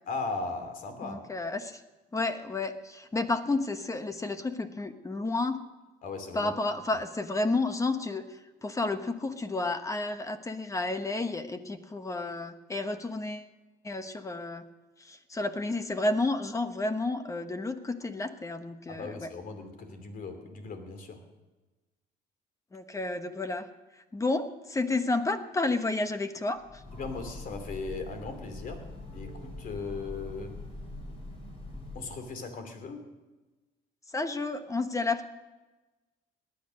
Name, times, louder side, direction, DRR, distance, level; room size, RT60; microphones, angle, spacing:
voice 1, 0.1-1.2 6.0-6.5 18.9-21.2 26.9-28.8 29.1-30.6 31.9-33.1, left 4 dB, 55° left, 6 dB, 2.8 m, -38 dB
voice 2, 1.0-1.8 2.1-5.6 6.3-13.5 13.8-14.7 15.0-19.3 22.7-23.7 24.0-26.8 34.1-35.3, left 2 dB, 20° left, 9 dB, 1.1 m, -31 dB
Train, 26.6-32.3, left 2 dB, 35° left, 5.0 m, -43 dB
18.5 x 10.5 x 6.4 m, 1.2 s
cardioid pair, 110°, 17 cm